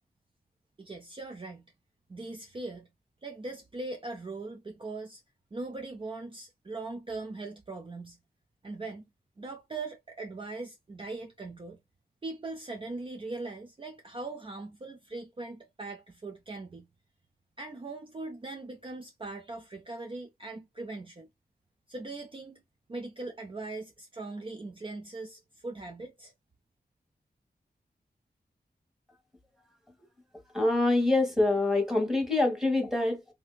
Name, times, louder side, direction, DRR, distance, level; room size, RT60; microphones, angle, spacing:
voice 1, 0.8-1.7 2.1-2.9 3.2-5.2 5.5-8.2 8.6-9.0 9.4-11.8 12.2-16.9 17.6-21.3 21.9-22.6 22.9-26.3, right 3 dB, 30° right, 0.5 m, -40 dB
voice 2, 30.5-33.2, left 2 dB, ahead, 1.4 m, -25 dB
3.3 x 2.7 x 2.3 m
wide cardioid pair, 80°, 17 cm